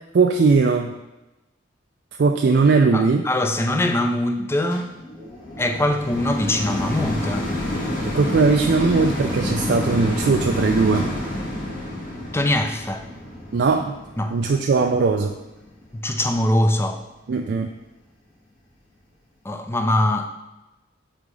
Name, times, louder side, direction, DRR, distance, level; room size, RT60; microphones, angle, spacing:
voice 1, 0.1-0.9 2.2-3.3 8.1-11.1 13.5-14.0 14.3-15.3 17.3-17.7, right 4 dB, 60° right, 3 dB, 0.4 m, -19 dB
voice 2, 2.9-4.9 5.6-7.4 12.3-13.0 14.2-14.4 15.9-17.0 19.4-20.3, left 1 dB, 15° left, 6 dB, 0.4 m, -22 dB
sound 1, 4.7-16.0 16.6-16.7, left 1 dB, 45° left, 1.4 m, -29 dB
5.4 x 3.9 x 4.7 m, 1.0 s
head